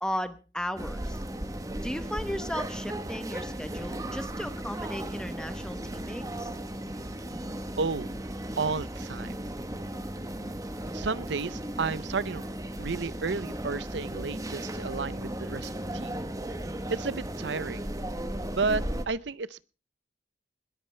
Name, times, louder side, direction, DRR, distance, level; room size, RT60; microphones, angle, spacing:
voice 1, 0.0-1.2 1.8-6.5, left 1 dB, 5° left, 1.0 m, -36 dB
sound 1, 0.8-19.0, right 1 dB, 20° right, 1.2 m, -36 dB
voice 2, 7.8-8.1 8.6-9.4 10.9-12.5 12.8-16.1 16.9-17.9 18.5-19.6, right 4 dB, 85° right, 0.6 m, -32 dB
21.0 x 13.5 x 3.3 m
head